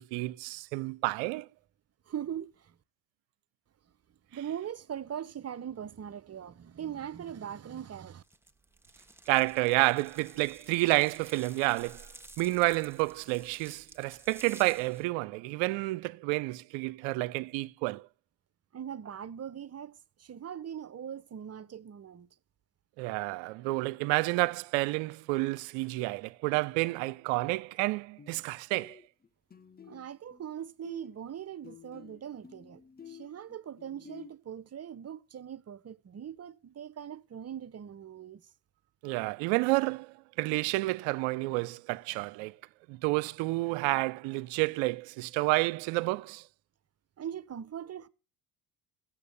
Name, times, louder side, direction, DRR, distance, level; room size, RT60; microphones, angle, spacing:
voice 1, 0.0-1.5 9.3-12.1 12.4-18.1 23.0-29.0 39.0-42.6 42.9-46.4, right 22 dB, 65° right, 0.7 m, -30 dB
voice 2, 2.1-2.8 4.3-8.2 18.7-19.9 20.2-22.3 29.9-38.4 47.2-48.1, right 9 dB, 30° right, 0.9 m, -41 dB
sound 1, 8.2-15.0, right 2 dB, 5° right, 1.4 m, -53 dB
sound 2, 26.6-26.8 28.2-28.4 28.7-30.5 30.8-34.3, left 7 dB, 20° left, 0.9 m, -51 dB
15.0 x 7.3 x 6.8 m
hypercardioid pair, 65°, 48 cm